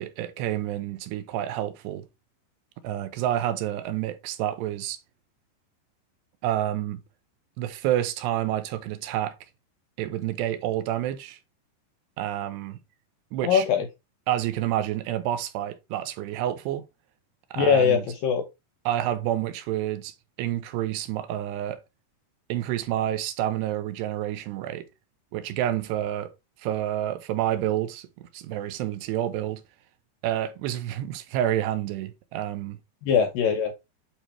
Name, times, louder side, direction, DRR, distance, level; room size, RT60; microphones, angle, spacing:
voice 1, 0.0-2.1 2.8-5.0 6.4-7.0 7.6-9.3 10.0-11.4 12.2-12.8 13.3-13.7 14.3-16.8 17.5-18.0 18.9-20.1 20.4-21.8 22.5-24.9 25.3-26.3 26.6-29.6 30.2-32.8, right 12 dB, 80° right, 2.8 m, -29 dB
voice 2, 13.4-13.9 17.6-18.4 33.0-33.7, left 7 dB, 75° left, 2.1 m, -21 dB
8.8 x 4.6 x 3.3 m
omnidirectional pair, 5.1 m